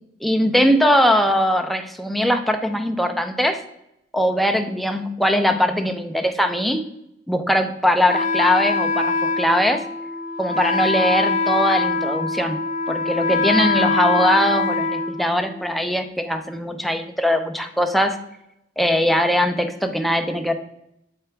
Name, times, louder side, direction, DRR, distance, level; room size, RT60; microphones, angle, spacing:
voice 1, 0.2-3.6 4.1-6.8 7.3-9.8 10.4-12.6 12.9-18.2 18.8-20.5, equal, ahead, 5 dB, 0.5 m, -20 dB
Wind instrument woodwind instrument, 8.1-15.8, left 3 dB, 45° left, 0.5 m, -23 dB
7.8 x 4.7 x 3.3 m, 0.80 s
head